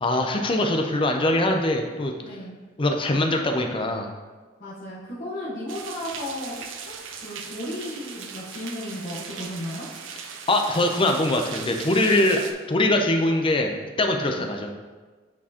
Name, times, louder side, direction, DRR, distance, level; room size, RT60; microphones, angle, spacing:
voice 1, 0.0-2.1 2.8-4.1 10.5-12.4 12.7-14.7, left 1 dB, 25° left, 3 dB, 0.5 m, -22 dB
voice 2, 2.2-2.5 4.6-7.0 7.2-9.9 14.3-14.5, left 1 dB, 45° left, -9 dB, 1.1 m, -34 dB
sound 1, 5.7-12.5, right 6 dB, 85° right, 0.6 m, -38 dB
8.4 x 4.5 x 2.9 m, 1.4 s
head